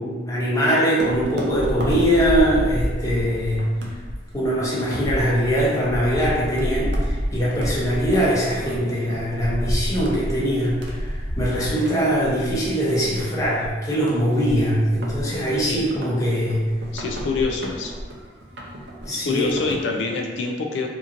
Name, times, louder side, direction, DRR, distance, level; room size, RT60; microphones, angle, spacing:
voice 1, 0.0-3.6 4.3-16.6 19.0-19.5, equal, 20° left, -7 dB, 0.6 m, -22 dB
sound 1, 1.0-20.0, equal, 70° right, 0.5 m, -30 dB
voice 2, 16.9-17.9 19.2-20.9, left 4 dB, 85° left, 2 dB, 0.3 m, -25 dB
2.8 x 2.5 x 2.5 m, 1.4 s
head